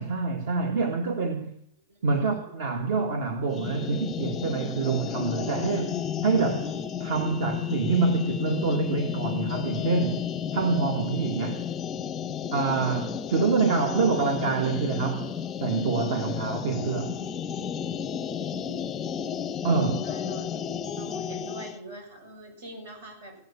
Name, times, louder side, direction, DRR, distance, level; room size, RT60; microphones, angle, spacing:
voice 1, 0.0-1.5 2.0-6.7 7.0-10.2 10.5-11.6 12.5-15.3 15.6-17.2 19.6-20.1, right 4 dB, 65° right, 1.9 m, -26 dB
voice 2, 1.9-2.5 20.0-20.6 21.0-23.4, right 1 dB, 85° right, 7.4 m, -44 dB
sound 1, 3.5-21.8, left 8 dB, 15° left, 0.5 m, -32 dB
16.5 x 9.3 x 8.7 m
supercardioid pair, 170°, 0 cm